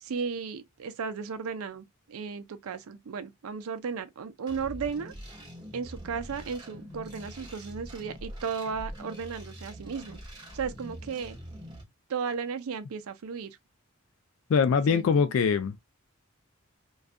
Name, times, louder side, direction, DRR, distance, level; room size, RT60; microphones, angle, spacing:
voice 1, 0.0-5.1 5.7-11.4 12.1-13.5 14.9-15.3, right 6 dB, 90° right, 0.4 m, -35 dB
sound 1, 4.5-11.8, equal, 20° right, 0.9 m, -44 dB
voice 2, 14.5-15.8, left 6 dB, 65° left, 0.3 m, -23 dB
2.3 x 2.3 x 2.4 m
head